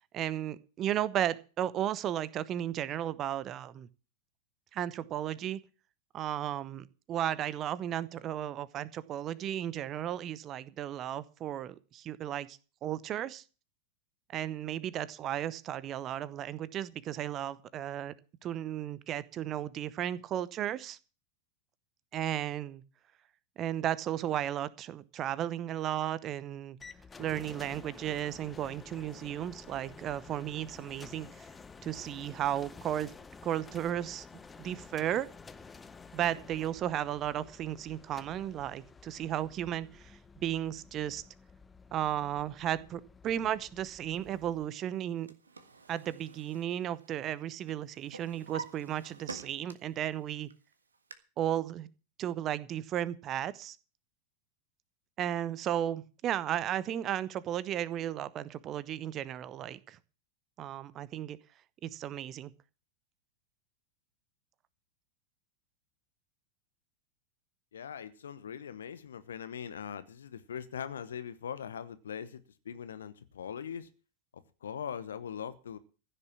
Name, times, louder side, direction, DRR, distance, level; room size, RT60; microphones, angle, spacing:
voice 1, 0.1-3.9 4.7-5.6 6.1-13.4 14.3-18.1 18.4-21.0 22.1-22.8 23.6-26.8 27.2-31.5 31.8-33.1 33.4-34.3 34.6-35.3 36.1-41.2 41.9-45.3 45.9-50.5 51.4-51.9 52.2-53.8 55.2-60.0 60.6-61.4 61.8-62.5, right 11 dB, 30° right, 20 dB, 0.8 m, -34 dB
sound 1, 26.8-44.7, left 4 dB, 15° left, 0.8 m, -52 dB
Drawer open or close, 44.9-47.4 47.7-50.0 50.4-51.1, right 4 dB, 75° right, 1.6 m, -48 dB
voice 2, 67.7-73.9 74.3-75.8, left 8 dB, 65° left, 13 dB, 1.1 m, -41 dB
15.5 x 6.9 x 8.6 m, 0.36 s
figure-of-eight pair, 90°, 0 cm